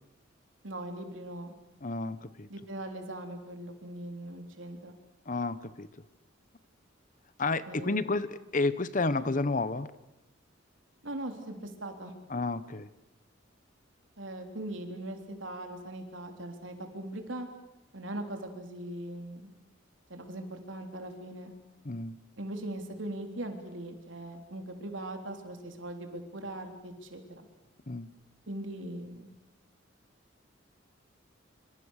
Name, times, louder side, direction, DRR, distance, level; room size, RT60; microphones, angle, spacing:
voice 1, 0.6-1.5 2.5-5.0 7.7-8.0 11.0-12.1 14.2-17.5 17.9-19.5 20.1-21.5 22.4-27.5 28.5-29.3, right 1 dB, 75° right, 5 dB, 3.6 m, -40 dB
voice 2, 1.8-2.5 5.3-5.9 7.4-9.9 12.3-12.9 21.8-22.1 27.9-28.1, left 3 dB, 40° left, 15 dB, 1.0 m, -31 dB
26.0 x 26.0 x 6.6 m, 0.92 s
head